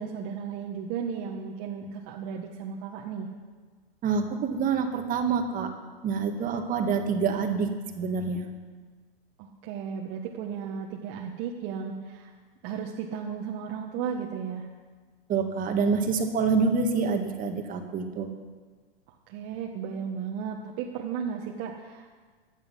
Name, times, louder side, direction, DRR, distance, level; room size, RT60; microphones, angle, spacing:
voice 1, 0.0-3.3 9.4-12.3 12.6-14.6 19.3-22.1, right 7 dB, 45° right, -1 dB, 1.5 m, -34 dB
voice 2, 4.0-5.7 6.0-7.7 7.9-8.5 15.3-18.3, right 5 dB, 25° right, 5 dB, 1.7 m, -26 dB
17.0 x 10.5 x 5.5 m, 1.5 s
hypercardioid pair, 125°, 30 cm